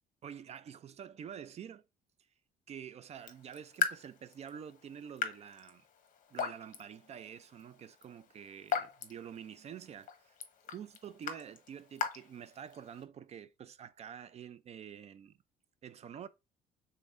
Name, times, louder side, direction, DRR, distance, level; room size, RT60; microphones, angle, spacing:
voice 1, 0.2-1.8 2.7-5.9 6.3-10.4 10.7-15.4 15.8-16.3, right 8 dB, 40° right, 0.4 m, -48 dB
Raindrop / Drip, 3.1-13.0, left 8 dB, 50° left, 0.9 m, -41 dB
5.2 x 3.8 x 2.5 m
cardioid pair, 110°, 17 cm